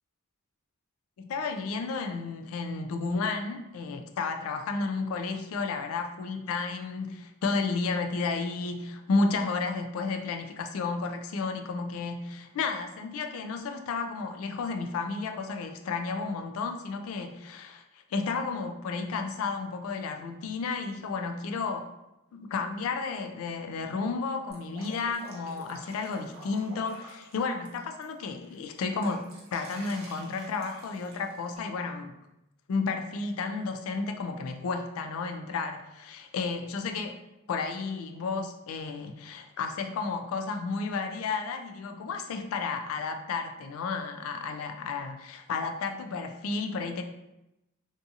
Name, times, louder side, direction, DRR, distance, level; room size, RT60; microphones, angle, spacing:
voice 1, 1.2-21.9 22.3-32.2 32.7-37.2 37.5-47.0, left 4 dB, 85° left, 6 dB, 0.3 m, -32 dB
Drip, 24.5-28.0 28.4-31.6, right 1 dB, 75° right, 0.7 m, -49 dB
2.6 x 2.4 x 2.6 m, 0.91 s
head